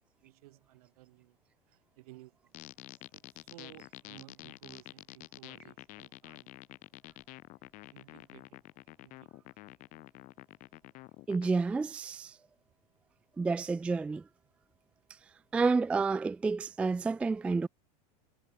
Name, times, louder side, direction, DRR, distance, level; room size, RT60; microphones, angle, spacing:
voice 1, 0.2-1.4 1.7-2.7 3.1-6.5 7.9-8.6 9.0-9.5, right 19 dB, 65° right, 4.6 m, -56 dB
sound 1, 2.5-11.5, left 22 dB, 40° left, 5.4 m, -49 dB
voice 2, 11.3-12.4 13.4-14.2 15.5-17.7, right 4 dB, 5° right, 0.4 m, -29 dB
supercardioid pair, 160°, 20 cm